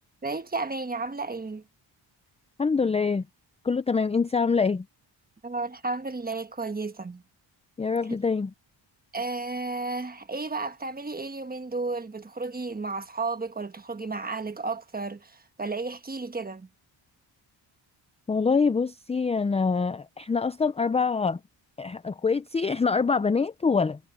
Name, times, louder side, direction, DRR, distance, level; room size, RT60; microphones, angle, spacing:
voice 1, 0.2-1.6 5.4-7.2 9.1-16.7, right 3 dB, 20° right, 1.3 m, -33 dB
voice 2, 2.6-3.3 3.6-4.8 7.8-8.5 18.3-21.4 21.8-24.0, left 5 dB, 15° left, 0.4 m, -25 dB
wide cardioid pair, 135°, 47 cm